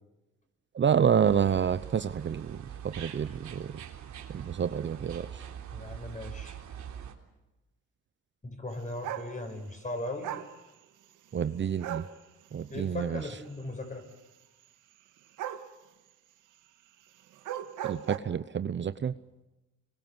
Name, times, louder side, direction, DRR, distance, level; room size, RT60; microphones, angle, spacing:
voice 1, 0.7-2.6 2.8-3.7 4.3-5.4 11.3-12.0 12.5-13.2 17.8-19.1, right 8 dB, 40° right, 13 dB, 0.8 m, -28 dB
sound 1, 1.2-7.1, right 9 dB, 70° right, 3.5 m, -43 dB
voice 2, 5.7-6.6 8.4-10.3 12.7-14.0, left 2 dB, 25° left, 5 dB, 6.6 m, -38 dB
sound 2, 9.0-9.3 10.2-10.5 11.8-12.1 15.4-15.7 17.3-18.2, right 11 dB, 90° right, 1.8 m, -36 dB
26.5 x 22.5 x 8.0 m, 1.0 s
cardioid pair, 90°, 30 cm